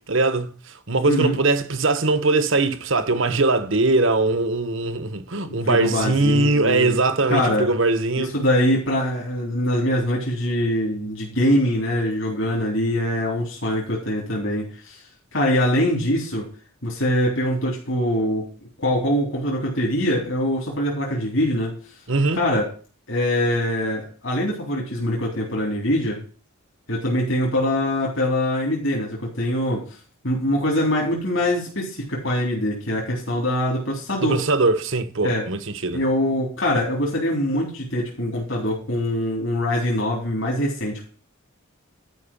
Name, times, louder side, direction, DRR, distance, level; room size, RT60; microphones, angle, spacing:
voice 1, 0.1-8.3 22.1-22.4 34.2-36.0, right 3 dB, 60° right, 1.2 m, -21 dB
voice 2, 5.6-7.0 7.3-7.7 8.2-15.0 15.3-16.5 16.8-18.5 18.8-21.8 22.3-22.6 23.1-26.2 26.9-30.0 30.2-34.4 35.2-35.5 35.9-41.1, left 1 dB, 60° left, 3.7 m, -23 dB
12.5 x 5.5 x 5.5 m
head